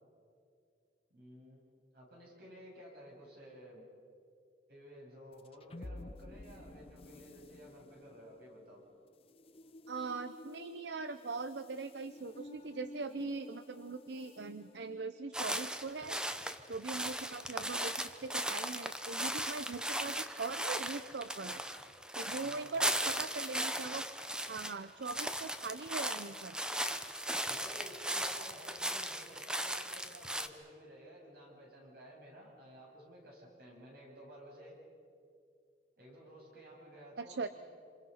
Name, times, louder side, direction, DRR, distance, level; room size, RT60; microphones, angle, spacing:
voice 1, 1.1-3.8 4.7-8.8 22.3-23.0 27.5-34.8 36.0-37.5, equal, 60° right, -2 dB, 7.9 m, -54 dB
sound 1, 5.3-15.8, left 1 dB, 35° left, 0.6 m, -53 dB
voice 2, 9.9-16.2 16.7-21.6 22.1-24.1 24.5-26.8 37.2-37.5, right 4 dB, 80° right, 11 dB, 0.7 m, -41 dB
sound 2, 15.3-24.7 25.0-30.5, right 1 dB, 5° right, 0.9 m, -37 dB
28.0 x 27.0 x 5.6 m, 2.4 s
head